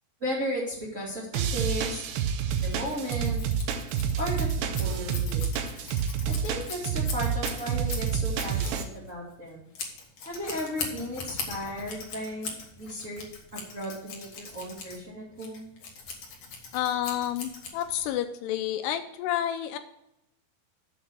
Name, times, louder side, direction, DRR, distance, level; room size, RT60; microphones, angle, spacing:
voice 1, 0.2-2.0 2.6-3.4 4.2-5.4 6.2-9.7 10.2-13.2 13.5-15.7, equal, 25° right, -6 dB, 1.8 m, -35 dB
sound 1, 1.3-8.8, right 7 dB, 85° right, 3.0 m, -29 dB
Scissors, 2.5-18.2, left 5 dB, 55° left, 1.9 m, -41 dB
voice 2, 16.7-19.8, left 11 dB, 80° left, 8 dB, 2.6 m, -30 dB
8.0 x 6.3 x 6.2 m, 0.81 s
omnidirectional pair, 4.9 m